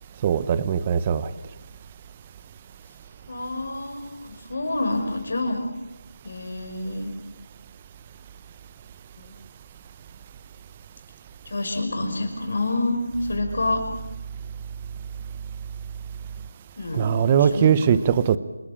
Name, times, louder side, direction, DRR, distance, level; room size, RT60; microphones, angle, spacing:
voice 1, 0.2-1.3 16.9-18.4, right 8 dB, 20° right, 16 dB, 0.7 m, -20 dB
voice 2, 3.3-5.7 6.2-7.1 9.2-9.3 11.5-13.8 16.8-17.7, left 2 dB, 55° left, 3 dB, 5.7 m, -28 dB
27.5 x 13.5 x 8.8 m, 1.0 s
figure-of-eight pair, 170°, 0 cm